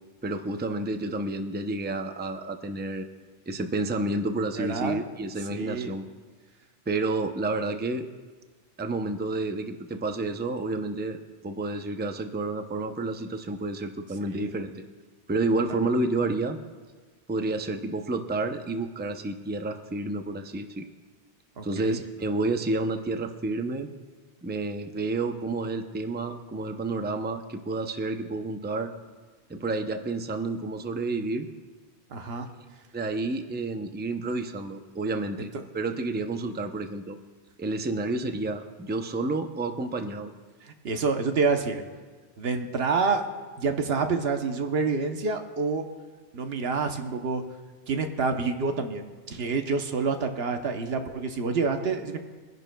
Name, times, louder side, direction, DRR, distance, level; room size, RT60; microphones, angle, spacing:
voice 1, 0.2-3.1 3.5-6.0 6.9-8.1 8.8-14.8 15.3-16.6 17.3-20.9 21.6-23.9 24.4-28.9 29.5-31.5 32.9-37.2 37.6-40.3, right 2 dB, 15° right, 6 dB, 0.4 m, -30 dB
voice 2, 4.6-5.0 5.5-5.9 14.3-14.5 15.7-15.9 21.6-22.0 32.1-32.5 35.4-35.5 40.6-41.8 42.4-43.2 43.6-45.8 46.3-47.4 47.9-52.2, right 4 dB, 65° right, 6 dB, 1.1 m, -28 dB
24.0 x 10.5 x 2.3 m, 1.4 s
omnidirectional pair, 1.2 m